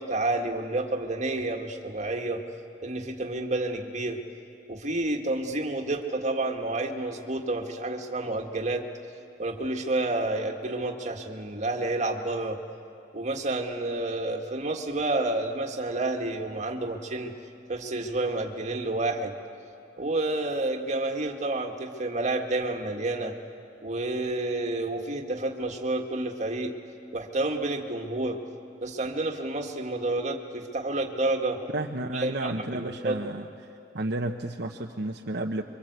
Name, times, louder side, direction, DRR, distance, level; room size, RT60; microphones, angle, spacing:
voice 1, 0.0-2.4 2.8-4.2 4.7-8.8 9.4-12.6 13.1-17.3 17.7-19.3 20.0-23.3 23.8-26.8 27.1-28.4 28.8-31.6 32.1-33.2, right 2 dB, 40° right, 3 dB, 1.8 m, -29 dB
voice 2, 31.7-33.5 33.9-35.6, right 2 dB, 65° right, 2 dB, 1.0 m, -31 dB
26.5 x 24.0 x 8.1 m, 2.6 s
head